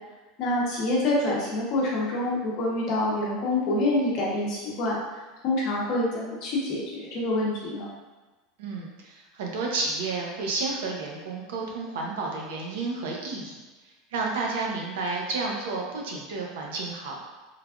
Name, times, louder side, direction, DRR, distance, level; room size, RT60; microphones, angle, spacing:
voice 1, 0.4-7.9, left 1 dB, 40° left, -4 dB, 0.7 m, -27 dB
voice 2, 8.6-13.6 14.1-17.2, right 3 dB, 90° right, -1 dB, 0.6 m, -31 dB
3.2 x 2.2 x 2.4 m, 1.2 s
supercardioid pair, 170°, 0 cm